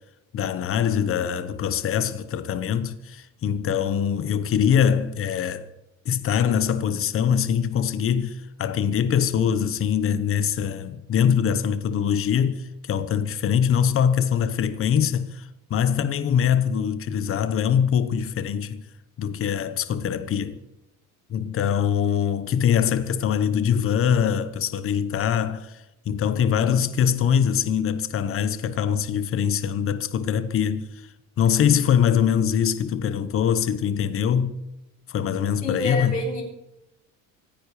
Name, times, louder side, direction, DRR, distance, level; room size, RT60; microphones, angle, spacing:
voice 1, 0.3-5.7 6.0-18.8 19.2-20.6 21.3-30.9 31.4-34.6 35.1-36.2, left 8 dB, 40° left, 1.1 m, -23 dB
voice 2, 35.6-36.4, left 2 dB, 25° left, 7.7 m, -27 dB
25.0 x 10.0 x 5.0 m
cardioid pair, 135°, 32 cm